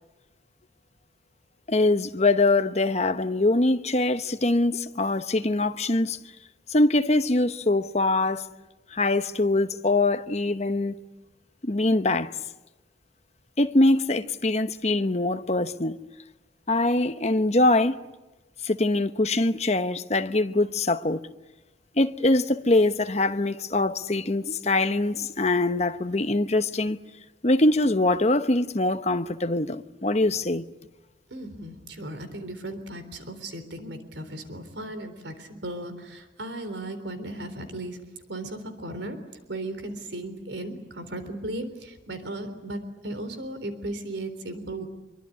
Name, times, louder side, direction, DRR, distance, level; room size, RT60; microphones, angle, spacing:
voice 1, 1.7-6.2 6.7-8.5 8.9-10.9 11.6-12.3 13.6-16.0 16.7-18.0 18.6-21.2 22.0-27.0 27.4-30.6, left 2 dB, 35° left, 1.0 m, -23 dB
voice 2, 31.3-38.0 38.3-39.2 39.5-44.9, right 1 dB, 70° right, 3.7 m, -36 dB
25.5 x 24.0 x 9.6 m
head